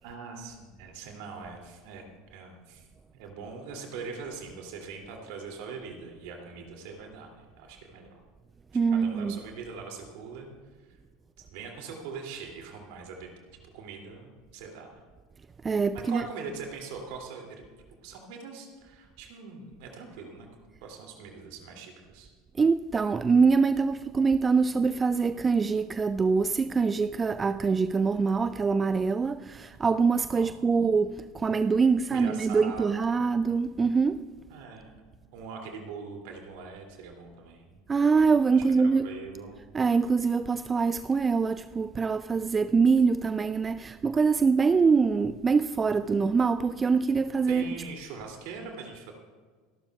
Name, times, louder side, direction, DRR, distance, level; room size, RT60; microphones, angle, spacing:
voice 1, 0.0-2.0 2.3-2.9 3.1-8.2 8.7-10.5 10.8-11.0 11.4-15.0 15.9-17.6 18.0-20.5 20.8-22.3 30.3-30.7 32.1-33.2 34.5-35.0 35.3-37.8 38.5-38.6 39.0-39.6 47.5-49.1, right 5 dB, 60° right, 2.6 m, -42 dB
voice 2, 8.7-9.4 15.6-16.2 22.6-34.3 37.9-39.1 39.7-47.7, right 5 dB, 25° right, 0.3 m, -24 dB
25.0 x 12.0 x 2.3 m
figure-of-eight pair, 75°, 0 cm